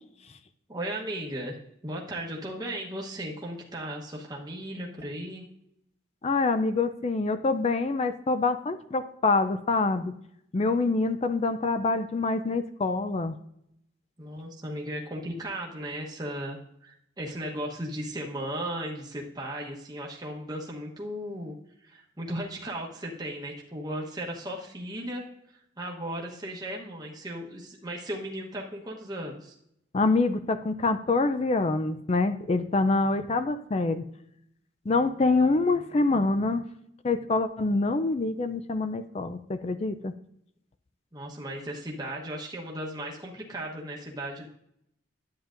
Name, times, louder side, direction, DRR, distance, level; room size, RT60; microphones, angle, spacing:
voice 1, 0.7-5.4 14.2-21.6 21.8-25.2 25.8-29.5 41.1-44.5, right 1 dB, 20° right, -2 dB, 1.0 m, -36 dB
voice 2, 6.2-10.1 10.5-13.4 29.9-34.0 34.9-36.6 37.0-40.1, left 3 dB, 35° left, 10 dB, 0.4 m, -25 dB
10.5 x 8.6 x 2.5 m, 0.75 s
head